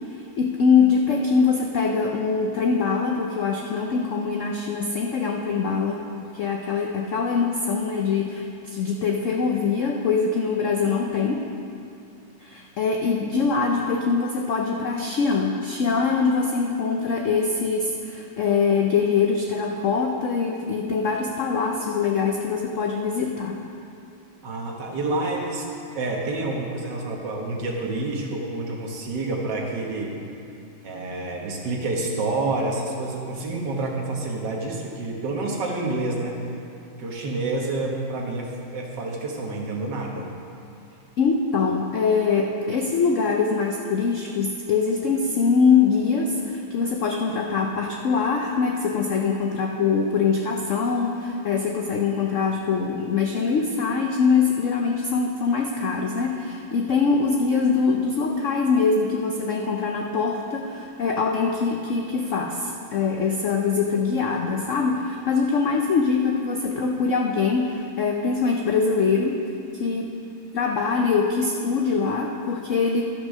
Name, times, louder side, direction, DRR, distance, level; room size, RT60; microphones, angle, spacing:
voice 1, 0.1-6.0 6.3-11.5 12.4-23.6 41.2-69.4 69.8-70.2 70.5-73.0, left 5 dB, 90° left, 1 dB, 0.6 m, -23 dB
voice 2, 24.4-30.1 30.8-36.4 37.0-40.3, right 2 dB, 65° right, -1 dB, 1.8 m, -28 dB
12.0 x 5.5 x 6.2 m, 2.6 s
omnidirectional pair, 2.1 m